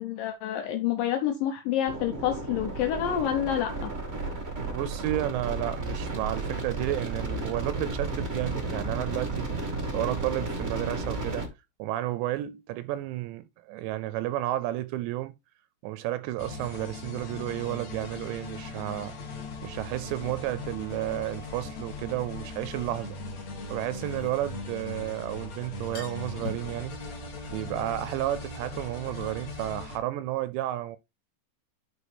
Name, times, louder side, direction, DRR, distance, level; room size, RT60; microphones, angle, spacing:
voice 1, 0.0-3.9, left 10 dB, 85° left, 2.0 m, -28 dB
sound 1, 1.9-11.5, right 2 dB, 55° right, 0.6 m, -33 dB
voice 2, 4.6-9.5 9.9-11.5 11.8-15.3 15.8-19.1 19.6-23.2 23.7-27.0 27.5-31.0, right 15 dB, 80° right, 2.7 m, -32 dB
sound 2, 16.4-30.0, left 3 dB, 50° left, 2.5 m, -39 dB
sound 3, 21.4-21.5 23.8-25.1 25.4-25.5 25.8-26.8, left 4 dB, 65° left, 3.4 m, -41 dB
11.0 x 4.5 x 3.4 m
omnidirectional pair, 5.3 m